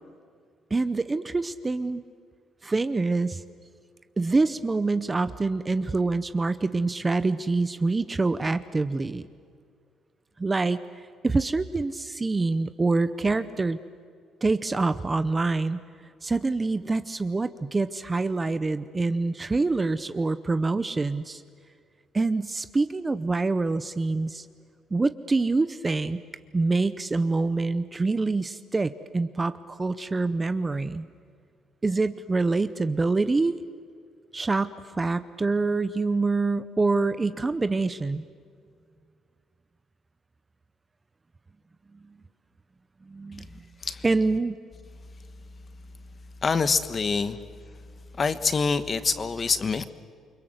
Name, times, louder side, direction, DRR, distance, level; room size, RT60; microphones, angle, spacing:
voice 1, 0.7-2.0 2.6-3.4 4.2-9.2 10.4-13.8 14.4-15.8 16.2-21.4 22.1-24.5 24.9-26.2 26.5-31.1 31.8-33.5 34.3-38.2 43.1-43.5 44.0-44.6, right 3 dB, 15° right, 13 dB, 0.7 m, -26 dB
voice 2, 46.4-47.4 48.1-49.8, left 5 dB, 25° left, 12 dB, 1.2 m, -25 dB
28.5 x 25.0 x 8.0 m, 2.2 s
cardioid pair, 165°, 0 cm